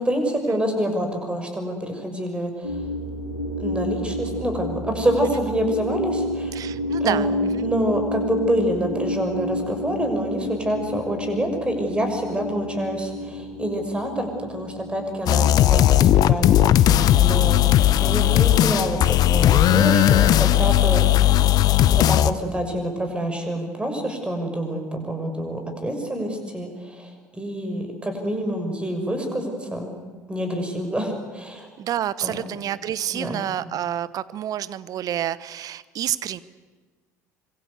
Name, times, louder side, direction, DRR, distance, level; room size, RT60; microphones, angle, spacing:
voice 1, 0.0-2.8 3.6-6.6 7.0-7.3 7.6-21.4 21.9-29.9 30.3-31.7 32.2-32.4 33.1-33.4, right 1 dB, 10° right, 5 dB, 6.6 m, -27 dB
sound 1, 2.6-18.0, left 1 dB, 85° left, 3.1 m, -30 dB
voice 2, 6.5-7.7 31.8-36.4, right 11 dB, 45° right, 18 dB, 1.0 m, -28 dB
sound 2, 15.3-22.3, left 13 dB, 45° left, 0.9 m, -17 dB
25.5 x 24.5 x 8.3 m, 1.4 s
figure-of-eight pair, 60°, 9 cm